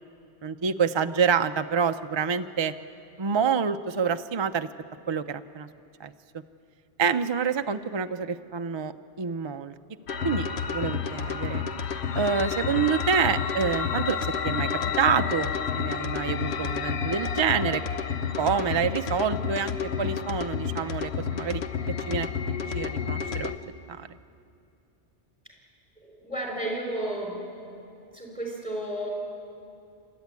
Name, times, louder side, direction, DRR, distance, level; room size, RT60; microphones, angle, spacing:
voice 1, 0.4-2.7 3.2-4.7 5.1-5.7 6.0-6.1 7.0-8.9 9.2-9.7 10.2-11.6 12.1-14.2 14.4-14.7 15.0-17.8 18.4-21.6 22.1-22.3 22.6-23.5 24.0-24.1, right 6 dB, 35° right, 8 dB, 0.4 m, -27 dB
sound 1, 10.1-23.6, left 6 dB, 80° left, 1.1 m, -30 dB
voice 2, 19.6-20.0 26.0-27.4 28.1-29.1, right 1 dB, 5° right, -1 dB, 5.2 m, -33 dB
26.5 x 13.0 x 9.6 m, 2.6 s
omnidirectional pair, 1.1 m